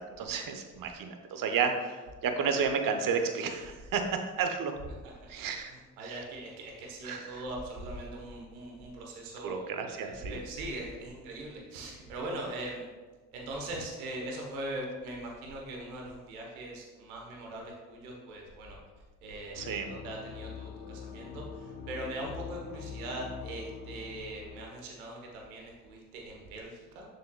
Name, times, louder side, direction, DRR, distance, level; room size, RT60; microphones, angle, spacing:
voice 1, 0.0-4.0 4.4-4.7 5.3-5.7 6.0-6.2 7.0-7.2 9.4-10.4 19.5-19.9, right 6 dB, 50° right, 6 dB, 0.9 m, -32 dB
voice 2, 5.0-5.3 5.7-12.9 13.3-18.8 19.2-19.6 19.9-27.1, right 1 dB, 85° right, 0 dB, 1.2 m, -41 dB
sound 1, 19.5-24.6, left 6 dB, 65° left, 1.1 m, -44 dB
6.9 x 6.3 x 2.3 m, 1.3 s
hypercardioid pair, 55°, 42 cm